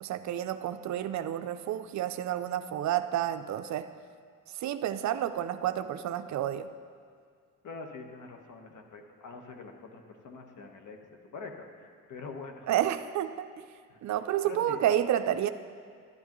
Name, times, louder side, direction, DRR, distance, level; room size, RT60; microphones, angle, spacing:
voice 1, 0.0-3.9 4.6-6.7 12.7-13.5 14.0-15.5, right 11 dB, 55° right, 11 dB, 0.5 m, -30 dB
voice 2, 7.6-11.7 12.1-12.7 13.9-14.0 14.4-14.8, left 4 dB, 60° left, 4 dB, 1.3 m, -44 dB
12.0 x 10.5 x 3.0 m, 2.1 s
cardioid pair, 85°, 35 cm